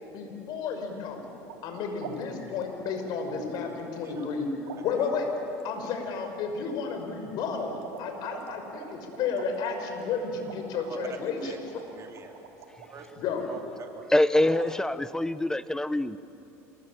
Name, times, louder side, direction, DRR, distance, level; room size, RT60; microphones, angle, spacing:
voice 1, 0.1-1.2 1.6-4.5 4.8-5.3 5.6-11.6 13.2-13.4, left 5 dB, 60° left, 4 dB, 5.9 m, -32 dB
sound 1, 1.4-1.7 2.0-4.4 4.6-5.6 7.4-12.9 14.3-14.7, right 7 dB, 80° right, 3.5 m, -45 dB
voice 2, 4.8-5.1 5.8-5.9 10.9-11.0 11.4-11.6 11.9-12.4 12.9-13.2 13.5-14.1, right 6 dB, 40° right, 2 dB, 4.4 m, -45 dB
voice 3, 14.1-16.2, left 1 dB, 10° left, 14 dB, 0.9 m, -24 dB
27.5 x 22.0 x 9.0 m, 2.8 s
supercardioid pair, 90°, 8 cm